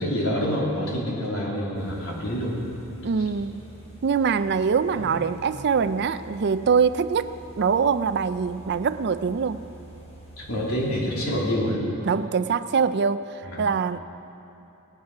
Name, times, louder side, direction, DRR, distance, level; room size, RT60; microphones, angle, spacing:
voice 1, 0.0-2.5 4.9-5.2 10.4-11.8 13.4-13.6, equal, 75° left, -4 dB, 3.1 m, -27 dB
sound 1, 1.7-11.5, right 1 dB, 30° left, 3.6 m, -46 dB
voice 2, 3.0-3.6 4.0-9.6 12.0-13.3 13.6-14.0, right 6 dB, 50° right, 13 dB, 0.4 m, -23 dB
18.0 x 9.6 x 6.1 m, 3.0 s
head